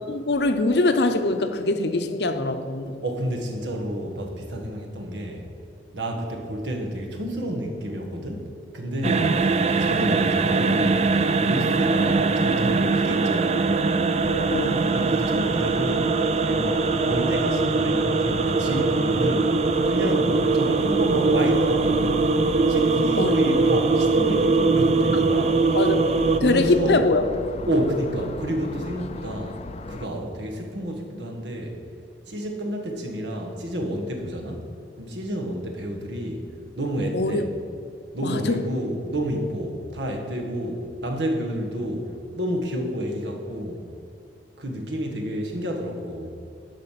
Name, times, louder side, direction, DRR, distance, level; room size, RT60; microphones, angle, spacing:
voice 1, 0.1-3.0 9.0-9.4 14.3-14.8 23.1-23.5 25.1-25.2 25.7-27.2 37.1-37.5 38.2-38.6, left 2 dB, 70° left, 8 dB, 0.7 m, -23 dB
voice 2, 3.0-5.5 5.9-9.2 9.7-11.1 11.4-13.9 14.8-19.6 19.8-22.3 22.7-25.7 26.4-27.0 27.7-29.6 29.9-31.8 32.3-34.6 35.0-36.5 36.8-37.5 38.1-43.9 44.6-46.4, equal, 85° right, 2 dB, 1.5 m, -29 dB
sound 1, 9.0-26.4, right 4 dB, 40° right, 0.4 m, -22 dB
sound 2, 14.2-30.1, left 3 dB, 35° left, 0.4 m, -37 dB
12.0 x 5.2 x 5.8 m, 2.5 s
head